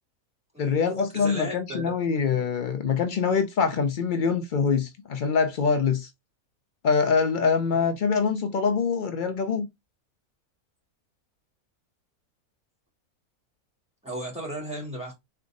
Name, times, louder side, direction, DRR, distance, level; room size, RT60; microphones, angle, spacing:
voice 1, 0.6-6.1 6.8-9.7, left 5 dB, 85° left, 0.4 m, -24 dB
voice 2, 1.1-1.8 14.0-15.1, right 1 dB, 5° right, 2.6 m, -35 dB
3.9 x 3.4 x 3.7 m
omnidirectional pair, 1.6 m